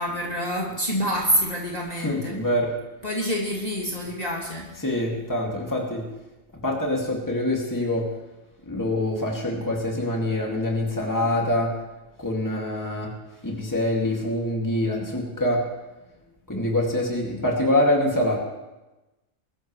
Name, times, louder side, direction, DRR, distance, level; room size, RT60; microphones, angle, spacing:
voice 1, 0.0-2.3 3.0-4.7, equal, 30° left, -4 dB, 2.1 m, -27 dB
voice 2, 2.0-2.7 4.8-6.0 6.6-8.1 8.6-11.7 12.2-13.1 13.4-15.6 16.5-18.4, left 1 dB, 15° left, -1 dB, 2.2 m, -25 dB
22.0 x 13.5 x 3.2 m, 1.0 s
omnidirectional pair, 1.4 m